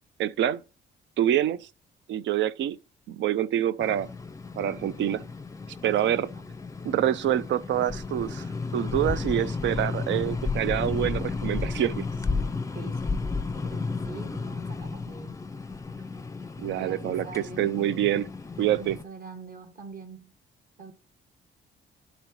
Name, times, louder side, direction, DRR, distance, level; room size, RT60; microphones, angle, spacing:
voice 1, 0.2-0.6 1.2-1.7 2.1-2.8 3.1-4.1 4.6-5.2 5.8-6.3 6.8-8.4 8.7-12.1 16.6-18.3 18.6-19.0, right 11 dB, 70° right, 0.5 m, -26 dB
sound 1, 3.8-19.0, left 4 dB, 15° left, 0.5 m, -33 dB
voice 2, 5.8-6.5 12.5-15.4 16.8-17.8 18.7-20.3 20.8-20.9, right 3 dB, 45° right, 1.7 m, -44 dB
11.5 x 3.9 x 3.0 m
cardioid pair, 90°, 20 cm